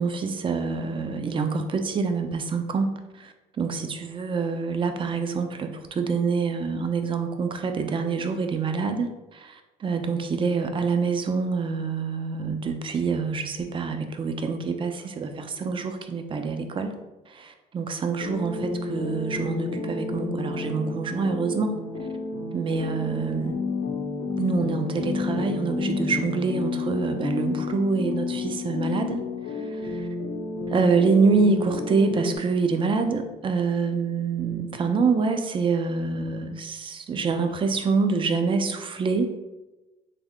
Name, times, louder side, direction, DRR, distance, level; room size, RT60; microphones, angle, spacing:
voice 1, 0.0-9.6 9.8-16.9 17.3-21.8 22.5-23.6 24.4-29.2 29.9-30.0 30.7-39.3, right 4 dB, 30° right, 7 dB, 0.4 m, -26 dB
sound 1, 18.2-32.4, left 3 dB, 70° left, 0.7 m, -31 dB
3.5 x 2.1 x 3.6 m, 1.1 s
cardioid pair, 110°, 17 cm